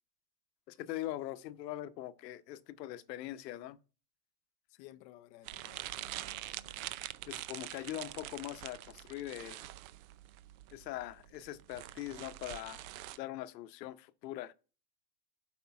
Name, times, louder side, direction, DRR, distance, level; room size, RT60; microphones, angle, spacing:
voice 1, 0.7-3.8 7.3-9.7 10.7-12.9 13.2-14.5, left 14 dB, 85° left, 0.9 m, -42 dB
voice 2, 4.7-6.9, left 14 dB, 35° left, 0.5 m, -57 dB
sound 1, 5.4-13.2, right 15 dB, 60° right, 0.6 m, -45 dB
8.2 x 5.3 x 5.6 m
supercardioid pair, 155°, 48 cm